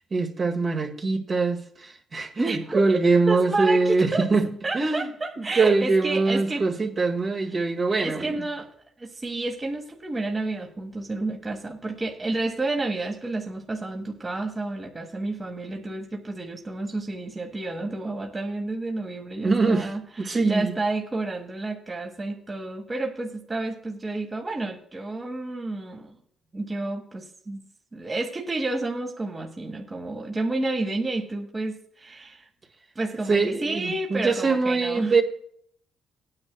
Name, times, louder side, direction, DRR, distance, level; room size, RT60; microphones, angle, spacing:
voice 1, 0.1-4.5 4.7-5.1 5.4-8.4 19.4-19.9 20.2-20.7 33.3-35.2, right 3 dB, 45° right, 1.8 m, -23 dB
voice 2, 2.4-2.8 3.3-4.3 4.6-6.6 8.0-8.7 9.0-26.2 26.5-27.6 27.9-32.5 32.9-35.1, right 2 dB, 25° right, 1.5 m, -30 dB
19.0 x 9.7 x 2.2 m
cardioid pair, 90°, 0 cm